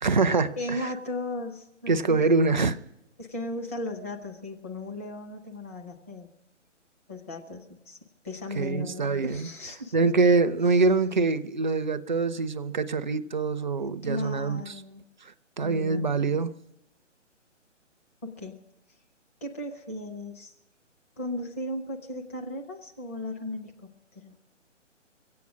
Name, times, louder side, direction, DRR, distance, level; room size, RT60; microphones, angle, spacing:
voice 1, 0.0-0.9 1.9-2.8 8.6-9.5 9.9-14.6 15.6-16.5, right 3 dB, 40° right, 0.4 m, -24 dB
voice 2, 0.6-2.2 3.2-6.3 7.1-8.0 8.2-9.9 14.0-15.0 15.6-16.1 18.2-18.7 19.4-20.5 21.2-24.4, left 1 dB, 10° left, 0.5 m, -36 dB
23.0 x 8.5 x 6.0 m
figure-of-eight pair, 140°, 37 cm